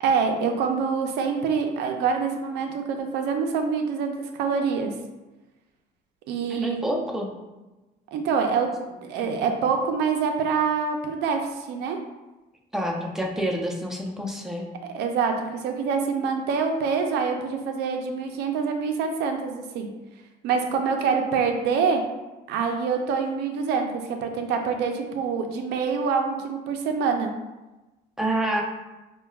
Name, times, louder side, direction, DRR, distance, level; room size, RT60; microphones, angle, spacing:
voice 1, 0.0-4.9 6.3-7.0 8.1-12.0 14.9-19.9 20.4-22.0 22.5-27.3, right 5 dB, 80° right, 4 dB, 0.4 m, -25 dB
voice 2, 6.5-7.3 12.7-14.7 28.2-28.6, right 1 dB, 5° right, -1 dB, 0.5 m, -27 dB
4.4 x 2.2 x 2.3 m, 1.1 s
cardioid pair, 110°, 17 cm